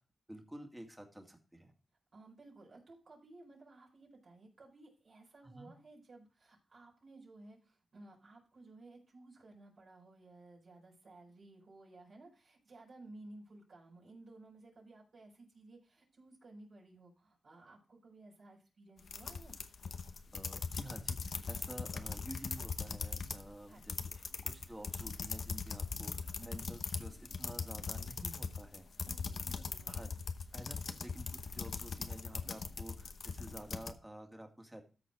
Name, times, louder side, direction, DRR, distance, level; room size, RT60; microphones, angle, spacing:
voice 1, 0.3-1.7 5.4-5.7 20.3-28.9 29.9-30.1 30.5-34.8, right 1 dB, 10° right, 3 dB, 2.2 m, -50 dB
voice 2, 2.1-19.6 23.7-24.1 29.1-30.1, right 2 dB, 60° right, -4 dB, 4.7 m, -57 dB
sound 1, 19.0-23.5 23.7-33.9, left 5 dB, 70° left, 0.9 m, -40 dB
13.5 x 4.6 x 4.8 m, 0.35 s
cardioid pair, 75°, 0 cm